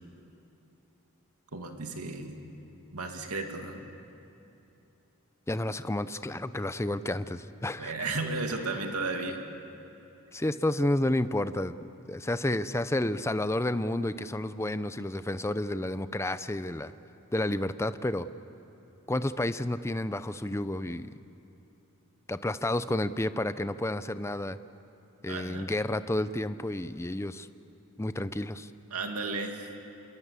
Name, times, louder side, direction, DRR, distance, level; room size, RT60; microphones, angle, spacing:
voice 1, 1.5-2.4 2.9-3.8 7.8-9.4 25.3-25.7 28.9-29.7, right 3 dB, 85° right, 4 dB, 2.4 m, -34 dB
voice 2, 5.5-7.9 10.3-11.8 12.1-16.9 17.3-18.3 19.1-21.1 22.3-24.6 25.2-27.5 28.0-28.7, left 1 dB, 10° left, 13 dB, 0.6 m, -30 dB
27.0 x 22.0 x 8.3 m, 2.9 s
head